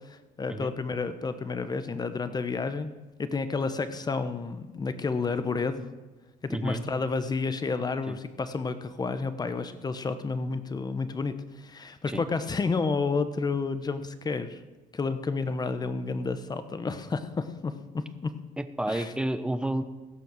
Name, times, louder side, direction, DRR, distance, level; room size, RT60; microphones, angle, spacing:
voice 1, 0.1-2.9 3.2-5.9 6.4-14.6 14.9-18.3 18.9-19.1, left 4 dB, 25° left, 11 dB, 0.9 m, -30 dB
voice 2, 6.5-6.8 8.1-8.2 12.1-12.2 18.6-19.8, right 1 dB, 5° right, 10 dB, 0.8 m, -30 dB
17.0 x 6.8 x 6.2 m, 1.2 s
cardioid pair, 110°, 17 cm